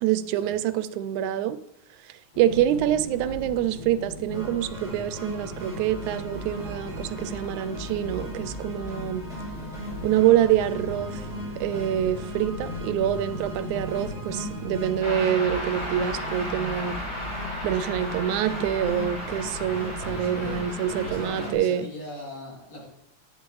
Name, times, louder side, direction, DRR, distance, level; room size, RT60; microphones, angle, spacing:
voice 1, 0.0-1.6 2.4-9.3 10.0-11.2 11.6-17.0 17.6-21.9, right 11 dB, 85° right, 13 dB, 2.0 m, -26 dB
sound 1, 2.3-21.4, left 2 dB, 80° left, 3.5 m, -38 dB
sound 2, 4.3-21.6, right 1 dB, ahead, 2.7 m, -40 dB
sound 3, 15.0-21.5, left 1 dB, 15° left, 1.1 m, -35 dB
voice 2, 19.9-20.6 21.0-22.9, left 1 dB, 60° left, -4 dB, 4.0 m, -39 dB
9.4 x 8.7 x 3.1 m, 0.78 s
omnidirectional pair, 3.3 m